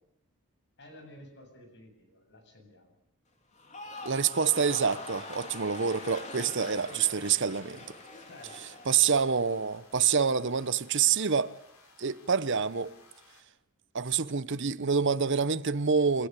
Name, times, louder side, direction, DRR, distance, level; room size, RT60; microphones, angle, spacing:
voice 1, 0.8-2.9 8.2-8.8, left 1 dB, 55° left, 8.0 m, -53 dB
sound 1, 3.5-9.9 10.2-10.7, left 2 dB, 30° left, 3.4 m, -44 dB
voice 2, 4.0-7.8 8.9-11.5 12.0-12.9 13.9-16.3, right 6 dB, 55° right, 0.9 m, -27 dB
sound 2, 4.7-13.4, left 3 dB, 75° left, 4.6 m, -59 dB
29.5 x 15.5 x 8.3 m
head